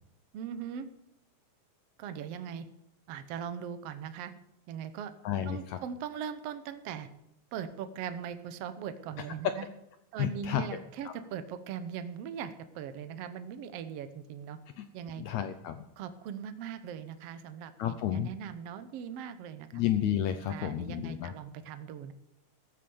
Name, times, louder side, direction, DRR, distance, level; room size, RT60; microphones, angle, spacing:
voice 1, 0.3-0.9 2.0-2.7 3.1-4.3 4.7-5.1 5.5-7.1 7.5-9.7 10.1-14.6 14.9-15.2 16.0-19.8 20.5-22.1, right 8 dB, 80° right, 11 dB, 1.4 m, -40 dB
voice 2, 5.2-5.8 10.2-11.1 14.8-14.9 15.2-15.8 17.8-18.3 19.7-21.3, left 10 dB, 80° left, 9 dB, 1.6 m, -32 dB
14.5 x 8.6 x 7.0 m, 0.81 s
omnidirectional pair, 4.0 m